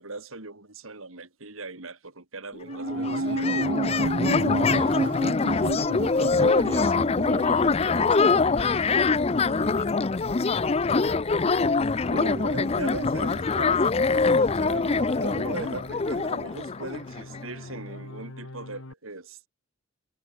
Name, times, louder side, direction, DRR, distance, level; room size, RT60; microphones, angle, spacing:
voice 1, 0.0-4.2 11.5-19.5, right 3 dB, 75° right, 3.1 m, -39 dB
sound 1, 2.6-2.7 2.8-17.5, left 4 dB, 30° left, 0.5 m, -24 dB
sound 2, 2.7-18.9, left 2 dB, 80° left, 1.8 m, -45 dB
sound 3, 2.7-9.2 9.5-9.6, right 2 dB, 60° right, 1.5 m, -31 dB
voice 2, 4.7-10.0, right 1 dB, 25° right, 0.9 m, -39 dB
head